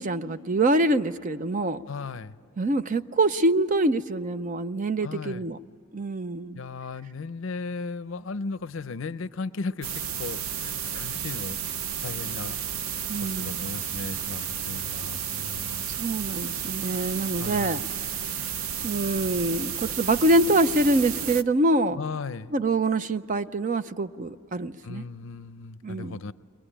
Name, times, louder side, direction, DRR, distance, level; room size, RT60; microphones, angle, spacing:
voice 1, 0.0-1.8 2.6-5.6 5.9-6.6 13.1-13.8 15.9-17.8 18.3-18.5 18.8-22.0 22.5-25.0 25.8-26.2, right 2 dB, 35° right, 12 dB, 0.5 m, -25 dB
voice 2, 1.8-2.3 5.0-5.5 6.5-11.6 12.0-12.6 13.2-15.9 17.4-17.8 21.9-22.5 24.8-26.3, left 4 dB, 60° left, 14 dB, 0.5 m, -36 dB
sound 1, 9.8-21.4, right 8 dB, 80° right, 0.6 m, -32 dB
22.5 x 20.5 x 10.0 m, 2.4 s
head